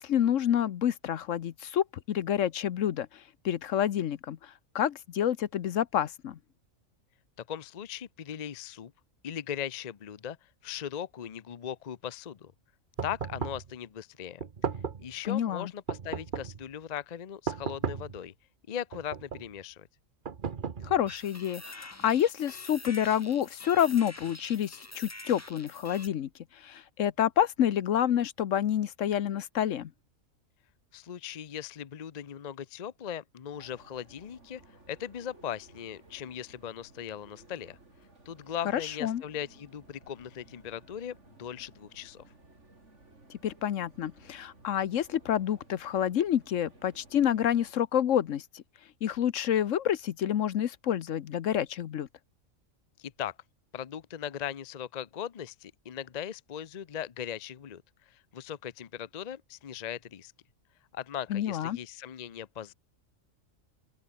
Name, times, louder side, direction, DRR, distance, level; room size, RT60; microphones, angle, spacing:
voice 1, 0.0-3.1 3.4-6.4 15.2-15.7 20.8-29.9 38.7-39.2 43.4-48.6 49.0-52.1 61.3-61.8, left 10 dB, 70° left, 1.1 m, -28 dB
voice 2, 7.4-8.9 9.2-12.5 13.0-14.4 15.0-18.3 18.7-19.9 30.9-34.6 34.9-37.8 38.3-42.2 53.0-53.3 53.7-60.3 60.9-62.7, left 9 dB, 40° left, 0.6 m, -39 dB
sound 1, 13.0-13.7 14.4-15.1 15.9-16.6 17.5-18.2 18.9-19.5 20.2-21.1, right 6 dB, 40° right, 1.1 m, -35 dB
sound 2, 21.1-26.1, left 1 dB, 10° left, 1.6 m, -46 dB
sound 3, 33.5-47.7, right 2 dB, 60° right, 4.9 m, -57 dB
open air
omnidirectional pair, 1.4 m